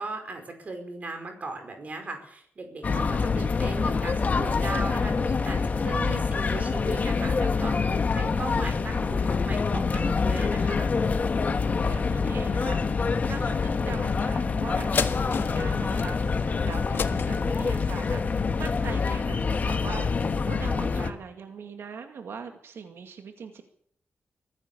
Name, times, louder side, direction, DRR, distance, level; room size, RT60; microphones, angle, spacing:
voice 1, 0.0-10.9, right 3 dB, 40° right, 5 dB, 5.0 m, -37 dB
sound 1, 2.8-21.1, left 4 dB, 40° left, 1.5 m, -26 dB
voice 2, 11.5-23.6, right 6 dB, 90° right, 5 dB, 2.3 m, -41 dB
sound 2, 14.9-19.7 20.2-20.3, left 6 dB, 60° left, 1.5 m, -35 dB
24.0 x 15.5 x 6.9 m, 0.65 s
wide cardioid pair, 170°, 4 cm